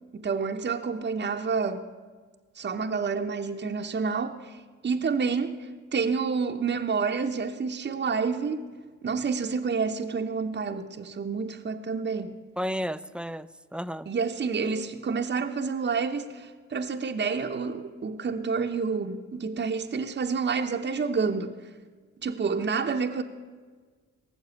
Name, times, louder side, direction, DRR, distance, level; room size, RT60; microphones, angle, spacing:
voice 1, 0.1-1.9 2.6-4.6 4.8-8.6 9.0-12.3 14.1-21.6 22.2-23.2, right 5 dB, 35° right, 4 dB, 0.9 m, -29 dB
voice 2, 12.6-14.1, equal, 5° right, 15 dB, 0.6 m, -33 dB
18.0 x 7.2 x 8.3 m, 1.5 s
supercardioid pair, 50°, 32 cm